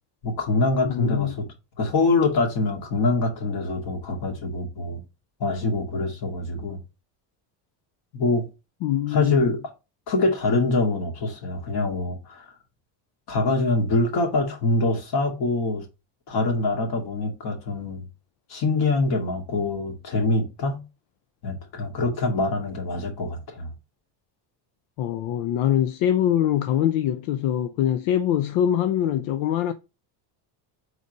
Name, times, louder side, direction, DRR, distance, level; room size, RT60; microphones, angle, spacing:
voice 1, 0.2-1.5 1.8-5.0 5.4-6.8 8.1-8.4 9.1-9.6 10.1-12.5 13.3-15.8 16.3-18.0 18.5-20.8 21.4-23.7, left 2 dB, 50° left, 2.1 m, -24 dB
voice 2, 0.8-1.4 8.8-9.5 25.0-29.7, left 10 dB, 80° left, 0.7 m, -23 dB
4.8 x 4.0 x 5.2 m
cardioid pair, 150°, 46 cm